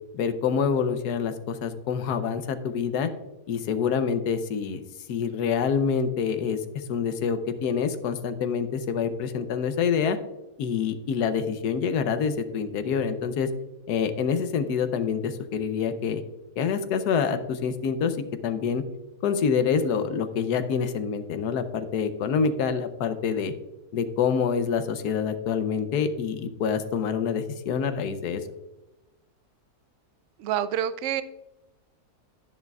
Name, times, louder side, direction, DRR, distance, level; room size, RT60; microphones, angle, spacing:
voice 1, 0.1-3.1 3.5-4.8 5.1-6.6 6.9-10.2 10.6-13.5 13.9-16.2 16.6-18.2 18.4-18.8 19.2-23.5 23.9-28.4, left 6 dB, 90° left, 9 dB, 1.3 m, -26 dB
voice 2, 30.4-31.2, right 10 dB, 70° right, 13 dB, 0.7 m, -27 dB
10.5 x 10.5 x 2.4 m, 0.99 s
omnidirectional pair, 1.6 m